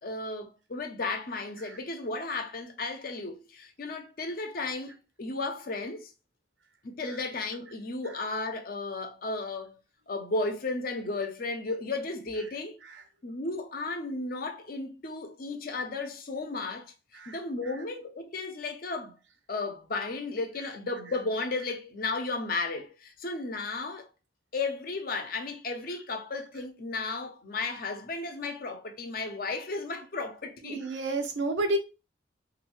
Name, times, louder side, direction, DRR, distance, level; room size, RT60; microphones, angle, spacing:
voice 1, 0.0-4.9 5.2-6.1 6.8-9.8 10.1-12.8 13.2-19.2 19.5-24.1 24.5-30.9, left 3 dB, 50° left, 0.6 m, -34 dB
voice 2, 30.7-31.8, right 2 dB, 90° right, 0.8 m, -30 dB
3.1 x 2.6 x 3.0 m
head